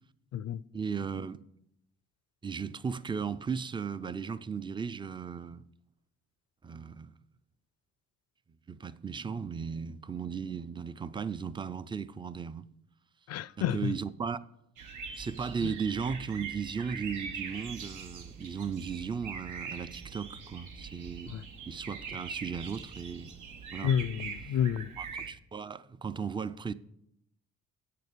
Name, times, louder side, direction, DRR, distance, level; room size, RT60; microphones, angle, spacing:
voice 1, 0.7-1.4 2.4-5.6 6.6-7.1 8.7-12.7 13.7-14.4 15.2-21.3 21.7-23.3 23.7-23.9 25.0-26.7, right 6 dB, 15° right, 0.4 m, -36 dB
voice 2, 13.3-13.9 15.6-15.7 21.3-21.4 23.8-24.9, left 9 dB, 55° left, 0.4 m, -30 dB
sound 1, 14.8-25.3, right 6 dB, 80° right, 1.2 m, -42 dB
8.3 x 6.7 x 6.7 m
cardioid pair, 90°, 30 cm